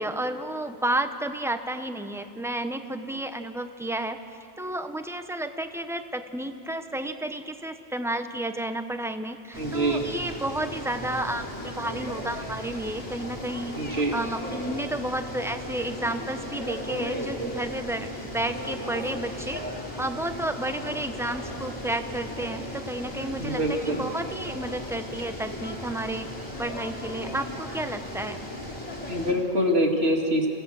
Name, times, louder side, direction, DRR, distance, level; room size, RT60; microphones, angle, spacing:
voice 1, 0.0-4.2 4.6-13.8 14.1-19.6 20.0-26.3 26.6-28.4, right 1 dB, 5° right, 8 dB, 0.9 m, -31 dB
sound 1, 9.5-29.3, left 1 dB, 25° left, 4.0 m, -36 dB
voice 2, 9.6-10.0 13.8-14.2 23.4-24.0 29.1-30.5, equal, 75° right, 2 dB, 2.6 m, -25 dB
28.0 x 16.5 x 7.7 m, 2.6 s
omnidirectional pair, 1.1 m